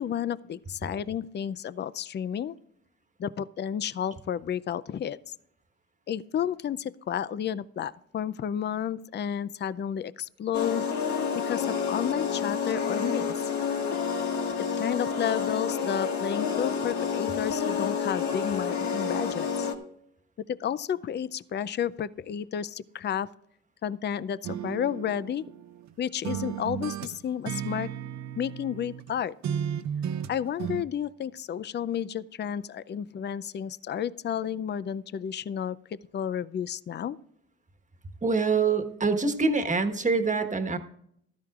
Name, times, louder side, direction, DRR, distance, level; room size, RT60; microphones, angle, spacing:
voice 1, 0.0-2.6 3.2-5.3 6.1-10.9 11.5-13.4 14.6-19.7 20.5-23.3 23.8-25.4 26.0-27.9 28.4-29.3 30.3-37.2, left 9 dB, 35° left, 18 dB, 0.5 m, -31 dB
sound 1, 10.5-19.7, left 6 dB, 70° left, 1.7 m, -29 dB
sound 2, 24.4-25.9 26.2-29.1 29.4-30.8, right 9 dB, 65° right, 0.8 m, -34 dB
voice 2, 38.2-40.8, right 4 dB, 25° right, 7 dB, 1.3 m, -25 dB
15.0 x 13.0 x 2.4 m, 0.70 s
cardioid pair, 90°, 30 cm